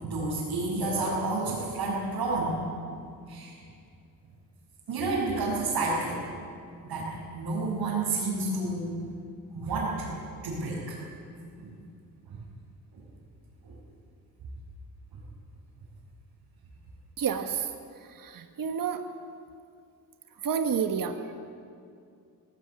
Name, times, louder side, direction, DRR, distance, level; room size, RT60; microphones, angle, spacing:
voice 1, 0.0-2.6 3.3-3.5 4.9-6.2 6.8-8.9 9.5-11.0 11.6-11.8 13.6-13.7, right 2 dB, 80° right, -6 dB, 5.8 m, -30 dB
voice 2, 17.2-17.7 18.1-19.0 20.4-21.3, right 7 dB, 60° right, 6 dB, 1.4 m, -29 dB
18.5 x 18.0 x 8.9 m, 2.4 s
cardioid pair, 95°, 38 cm